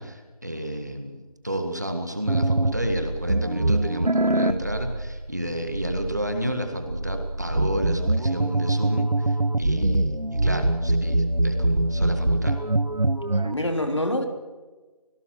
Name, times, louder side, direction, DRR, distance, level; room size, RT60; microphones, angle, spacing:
voice 1, 0.0-12.6, right 1 dB, 25° right, 5 dB, 1.8 m, -31 dB
sound 1, 2.3-13.5, right 2 dB, 90° right, 1.4 m, -24 dB
voice 2, 13.3-14.2, left 1 dB, 45° left, 5 dB, 3.1 m, -26 dB
25.5 x 18.0 x 6.4 m, 1.3 s
figure-of-eight pair, 180°, 20 cm